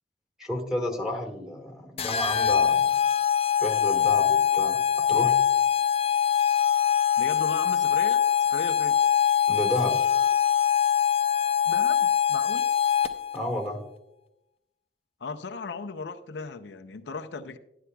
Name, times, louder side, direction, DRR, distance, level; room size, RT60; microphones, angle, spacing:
voice 1, 0.4-2.9 3.6-5.4 9.5-10.0 13.3-13.8, left 1 dB, 5° right, 0 dB, 1.5 m, -31 dB
sound 1, 2.0-13.4, left 9 dB, 35° left, 0.5 m, -23 dB
voice 2, 7.2-8.2 8.5-9.0 11.6-12.7 15.2-17.6, left 4 dB, 85° left, 6 dB, 0.6 m, -36 dB
12.0 x 11.0 x 2.3 m, 0.84 s
head